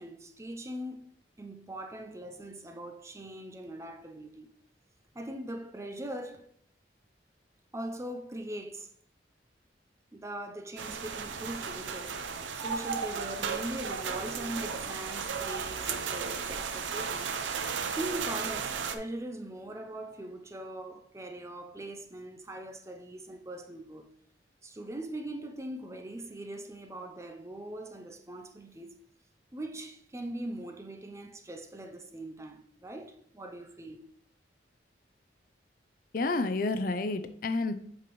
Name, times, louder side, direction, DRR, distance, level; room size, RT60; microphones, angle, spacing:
voice 1, 0.0-4.5 5.1-6.5 7.7-8.9 10.1-12.1 12.6-17.3 18.0-24.1 24.6-28.9 29.5-34.1, right 1 dB, 15° right, 0.5 m, -41 dB
sound 1, 10.8-19.0, right 6 dB, 85° right, 0.6 m, -35 dB
voice 2, 36.1-37.8, left 3 dB, 50° left, 0.5 m, -30 dB
7.6 x 5.2 x 3.0 m
head